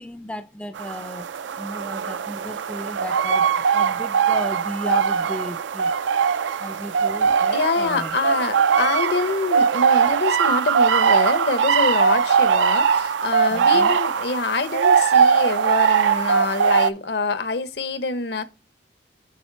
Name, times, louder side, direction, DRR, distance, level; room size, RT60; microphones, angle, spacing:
voice 1, 0.0-6.1 6.6-8.2 13.5-14.0, left 1 dB, 5° left, 0.3 m, -34 dB
sound 1, 0.8-16.9, right 6 dB, 85° right, 0.4 m, -20 dB
voice 2, 7.2-18.4, left 3 dB, 65° left, 0.7 m, -25 dB
8.6 x 3.3 x 4.5 m
head